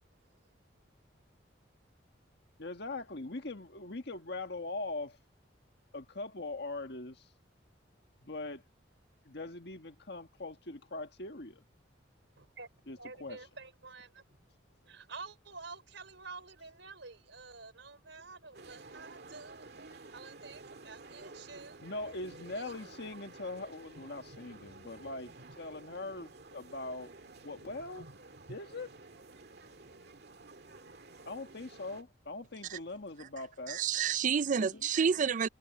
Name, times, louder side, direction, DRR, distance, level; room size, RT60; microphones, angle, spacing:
voice 1, 2.6-5.2 5.9-7.3 8.2-8.6 9.2-11.6 12.9-13.6 21.8-27.1 27.4-28.1 28.5-28.9 31.3-33.8 34.5-34.9, left 2 dB, 60° left, 1.6 m, -41 dB
voice 2, 12.4-12.7 13.0-14.2 14.8-21.8 22.5-22.7 27.7-28.6, right 4 dB, 75° right, 4.7 m, -50 dB
sound 1, 18.5-32.0, right 3 dB, 60° right, 2.0 m, -52 dB
voice 3, 33.7-35.5, right 7 dB, 40° right, 0.4 m, -29 dB
head